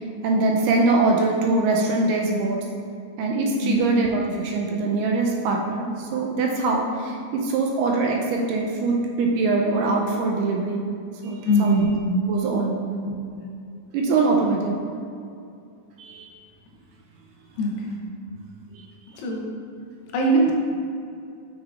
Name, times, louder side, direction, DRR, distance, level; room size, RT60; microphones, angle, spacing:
voice 1, 0.2-2.6 3.2-10.8 11.2-11.8 12.3-12.8 13.9-14.8 16.0-16.3 18.8-18.9, right 3 dB, 80° right, 0 dB, 2.0 m, -23 dB
voice 2, 11.5-11.9 13.0-13.1 17.6-17.7 19.2-19.4 20.1-20.5, equal, 85° left, -1 dB, 2.7 m, -20 dB
7.4 x 6.0 x 2.4 m, 2.4 s
omnidirectional pair, 4.1 m